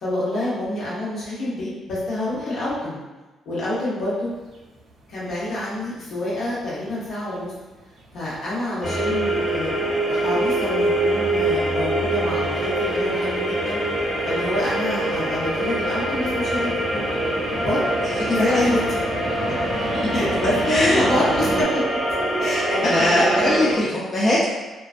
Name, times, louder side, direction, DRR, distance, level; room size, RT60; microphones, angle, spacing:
voice 1, 0.0-3.0 3.4-4.3 5.1-7.5 8.1-13.8 14.2-17.0 17.5-17.8 18.3-19.0 19.5-19.8 20.1-21.8 22.4-23.9, left 1 dB, 65° left, -8 dB, 1.0 m, -27 dB
sound 1, 4.3-21.6, right 1 dB, 65° right, 0.5 m, -36 dB
sound 2, 8.8-23.7, right 1 dB, 15° left, 0.8 m, -24 dB
voice 2, 18.4-18.8 20.0-20.1 20.7-21.1 22.4-24.5, left 1 dB, 40° left, -7 dB, 0.5 m, -21 dB
2.3 x 2.2 x 2.4 m, 1.2 s
cardioid pair, 90°, 0 cm